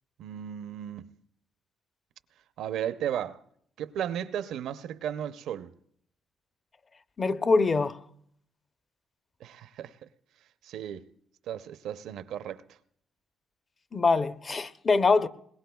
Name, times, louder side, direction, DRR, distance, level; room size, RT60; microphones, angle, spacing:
voice 1, 0.2-1.1 2.6-3.4 3.8-5.7 9.4-10.1 10.6-11.1 11.5-12.8, right 10 dB, 80° right, 0.6 m, -35 dB
voice 2, 7.2-8.0 13.9-15.3, left 4 dB, 35° left, 0.6 m, -23 dB
22.0 x 20.5 x 2.3 m
cardioid pair, 90°, 0 cm